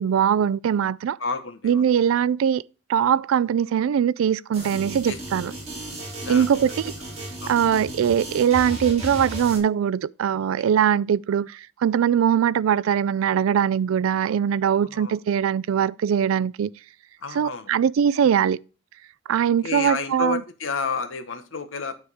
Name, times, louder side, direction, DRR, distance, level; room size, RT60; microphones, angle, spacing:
voice 1, 0.0-1.2 1.6-2.6 2.9-5.5 6.3-6.7 7.5-16.7 17.4-18.6 19.3-20.4, right 8 dB, 90° right, 0.3 m, -21 dB
voice 2, 1.2-1.8 5.1-5.4 6.2-6.5 7.4-7.6 10.6-10.7 14.6-15.1 17.2-17.7 19.6-22.0, left 4 dB, 75° left, 1.1 m, -31 dB
sound 1, 4.5-9.6, right 1 dB, 30° right, 2.5 m, -35 dB
9.7 x 3.6 x 6.1 m
head